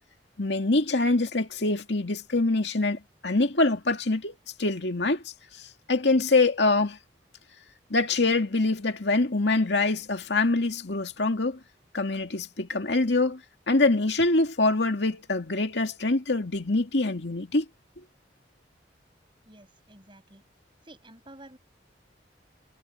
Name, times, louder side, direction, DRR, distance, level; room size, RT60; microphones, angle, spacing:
voice 1, 0.4-5.2 5.5-7.0 7.9-11.6 11.9-13.4 13.7-17.6, left 2 dB, 75° left, 2.2 m, -25 dB
voice 2, 19.5-20.4 20.8-21.6, right 1 dB, 30° right, 7.1 m, -50 dB
head